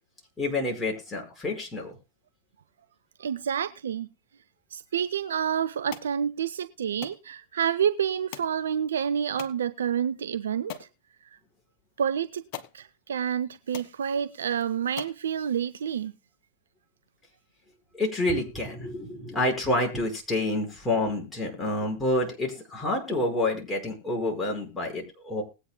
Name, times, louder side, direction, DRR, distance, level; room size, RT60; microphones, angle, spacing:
voice 1, 0.4-1.9 17.9-25.4, left 2 dB, 10° left, 5.0 m, -28 dB
voice 2, 3.2-4.1 4.7-10.9 11.2-11.4 12.0-12.4 12.7-16.1, right 8 dB, 75° right, 0.5 m, -28 dB
sound 1, 5.9-6.1 7.0-7.2 8.3-8.6 9.4-9.6 10.2-10.3 10.7-10.9 12.0-12.1 12.5-12.8 13.4-13.5 13.7-13.9 14.5-14.6 15.0-15.2, left 10 dB, 50° left, 1.4 m, -41 dB
20.0 x 8.8 x 2.2 m
hypercardioid pair, 100°, 0 cm